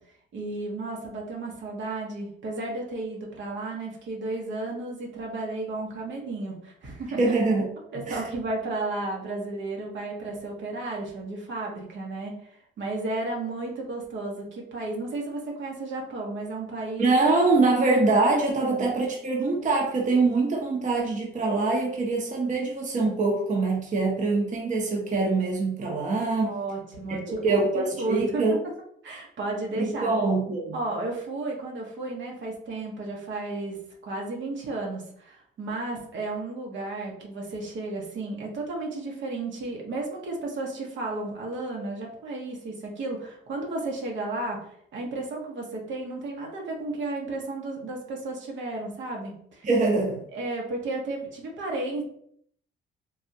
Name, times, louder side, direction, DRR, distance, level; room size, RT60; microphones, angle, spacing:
voice 1, 0.3-7.2 7.9-12.4 12.8-17.0 18.7-18.9 26.4-28.4 29.0-30.1 30.7-49.7 50.3-52.0, right 2 dB, 70° right, -1 dB, 0.9 m, -33 dB
voice 2, 7.2-7.7 8.1-8.2 17.0-26.6 27.3-28.5 29.8-30.8 49.6-50.2, right 3 dB, 40° right, -1 dB, 0.8 m, -24 dB
3.4 x 2.3 x 2.7 m, 0.66 s
cardioid pair, 90°, 20 cm